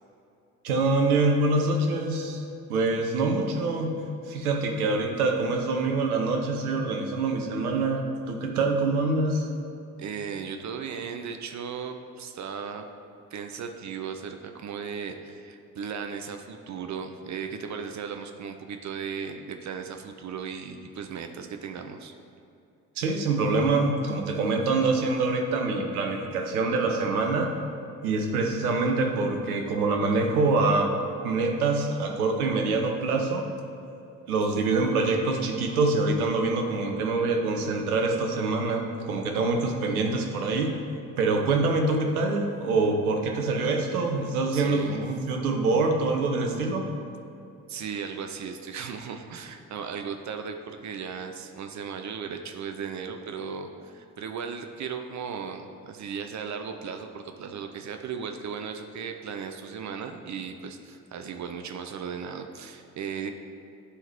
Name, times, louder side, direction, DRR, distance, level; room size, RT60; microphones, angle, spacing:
voice 1, 0.6-2.4 2.7-3.9 4.3-9.5 23.0-27.5 28.0-30.9 31.2-33.5 34.3-40.7 41.2-46.8, right 3 dB, 85° right, 3 dB, 0.8 m, -25 dB
voice 2, 10.0-12.8 13.3-22.1 44.5-45.0 47.7-63.3, right 6 dB, 40° right, 6 dB, 0.6 m, -36 dB
9.8 x 3.9 x 4.5 m, 2.7 s
figure-of-eight pair, 45°, 43 cm